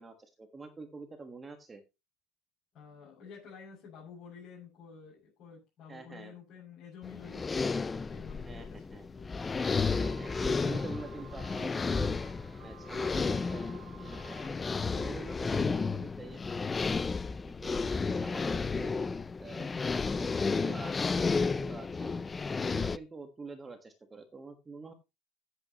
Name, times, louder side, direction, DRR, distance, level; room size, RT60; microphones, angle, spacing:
voice 1, 0.0-1.8 5.9-6.3 8.5-9.0 10.0-12.1 12.6-14.6 14.9-16.9 17.5-18.9 19.4-19.7 20.2-22.1 22.6-24.9, right 3 dB, 15° right, 7 dB, 1.4 m, -46 dB
voice 2, 2.7-9.3, left 6 dB, 40° left, -5 dB, 6.7 m, -51 dB
sound 1, 7.0-23.0, left 4 dB, 15° left, 0.4 m, -32 dB
sound 2, 9.4-14.5, right 13 dB, 65° right, 1.6 m, -54 dB
14.5 x 8.1 x 3.0 m, 0.25 s
cardioid pair, 150°, 0 cm